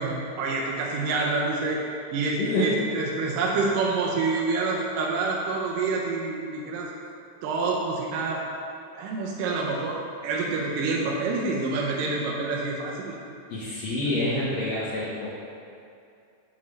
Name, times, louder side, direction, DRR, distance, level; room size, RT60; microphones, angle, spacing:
voice 1, 0.0-1.8 2.1-6.9 7.4-8.4 8.9-13.2, right 3 dB, 80° right, -2 dB, 2.0 m, -27 dB
voice 2, 2.4-2.9 13.5-15.3, left 1 dB, 80° left, -9 dB, 1.5 m, -27 dB
7.4 x 7.0 x 3.2 m, 2.5 s
omnidirectional pair, 4.5 m